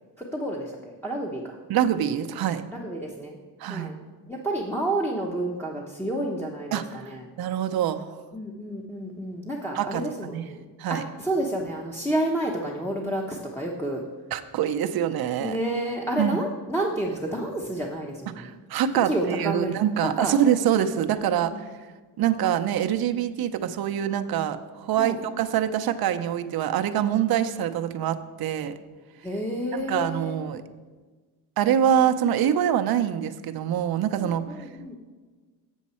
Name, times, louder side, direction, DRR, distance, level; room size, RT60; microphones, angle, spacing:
voice 1, 0.2-1.6 2.7-3.4 3.7-4.0 4.3-7.3 8.3-14.0 15.4-18.6 19.0-19.8 20.2-20.4 21.2-21.6 25.0-25.2 29.2-30.4 34.2-35.0, right 1 dB, 5° left, -3 dB, 0.9 m, -30 dB
voice 2, 1.7-2.6 3.6-3.9 6.7-6.8 7.4-8.1 9.7-10.0 10.3-11.0 14.3-15.6 16.2-16.4 18.4-21.5 22.2-28.7 29.7-30.6 31.6-34.5, right 10 dB, 55° right, 8 dB, 0.7 m, -25 dB
7.3 x 7.2 x 4.3 m, 1.4 s
supercardioid pair, 75°, 43 cm